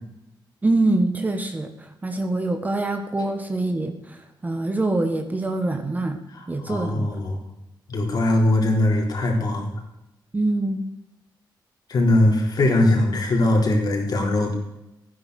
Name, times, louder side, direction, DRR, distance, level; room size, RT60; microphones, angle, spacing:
voice 1, 0.6-6.2 6.5-7.2 10.3-10.8, right 2 dB, 20° right, 6 dB, 1.4 m, -24 dB
voice 2, 6.3-7.4 7.9-9.7 11.9-14.5, left 1 dB, 55° left, 0 dB, 4.1 m, -21 dB
15.5 x 9.9 x 6.4 m, 0.91 s
wide cardioid pair, 155°, 8 cm